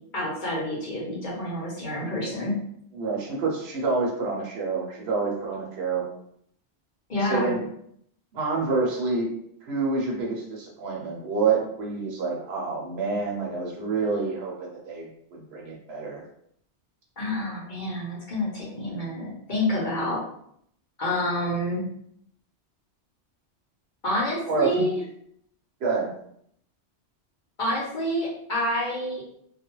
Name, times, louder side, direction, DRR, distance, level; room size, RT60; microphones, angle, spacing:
voice 1, 0.1-2.6 7.1-7.5 17.2-20.2 21.0-21.9 24.0-25.0 27.6-29.2, left 1 dB, 50° left, -5 dB, 0.8 m, -28 dB
voice 2, 2.9-6.1 7.2-7.7 8.3-9.3 9.6-16.2 24.5-24.9 25.8-26.1, right 4 dB, 70° right, -2 dB, 0.9 m, -27 dB
2.3 x 2.1 x 2.9 m, 0.69 s
omnidirectional pair, 1.2 m